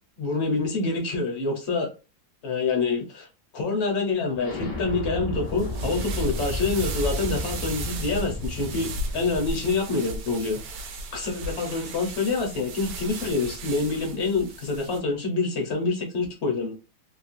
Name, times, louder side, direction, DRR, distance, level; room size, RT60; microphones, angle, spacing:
voice 1, 0.2-1.9 2.4-3.3 3.5-10.6 11.1-16.7, left 3 dB, 50° left, 2 dB, 1.0 m, -26 dB
Explosion, 4.4-9.9, equal, 25° left, 0.5 m, -33 dB
sound 1, 5.5-15.0, right 1 dB, 80° right, 1.2 m, -36 dB
3.0 x 2.4 x 2.5 m, 0.31 s
omnidirectional pair, 1.7 m